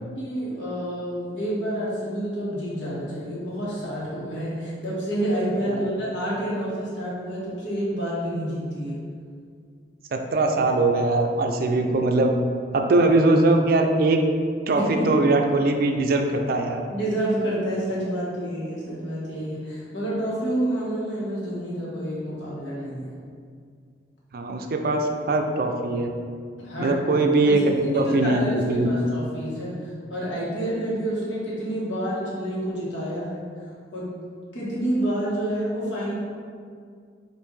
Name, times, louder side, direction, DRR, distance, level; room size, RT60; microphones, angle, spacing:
voice 1, 0.2-9.0 14.7-15.1 16.9-23.2 26.6-27.0 27.5-27.6 27.9-28.6 28.8-33.4 33.9-34.2 34.5-36.1, right 1 dB, 85° left, -6 dB, 1.3 m, -28 dB
voice 2, 10.1-12.3 12.7-14.2 14.7-16.8 24.3-26.1 26.8-28.9, right 2 dB, 50° right, 4 dB, 0.4 m, -21 dB
5.4 x 2.6 x 3.2 m, 2.1 s
head